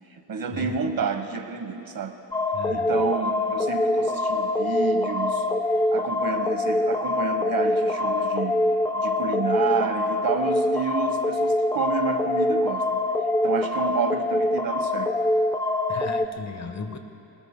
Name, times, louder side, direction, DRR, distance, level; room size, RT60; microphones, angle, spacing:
voice 1, 0.1-2.2 2.7-5.5 5.9-8.6 9.0-13.0 13.4-15.2, right 5 dB, 50° right, 7 dB, 1.2 m, -30 dB
sound 1, 2.3-16.3, left 2 dB, 10° left, 0.4 m, -24 dB
voice 2, 2.5-3.0 15.9-17.0, left 4 dB, 40° left, 7 dB, 1.2 m, -36 dB
23.5 x 20.0 x 2.2 m, 3.0 s
cardioid pair, 90°, 43 cm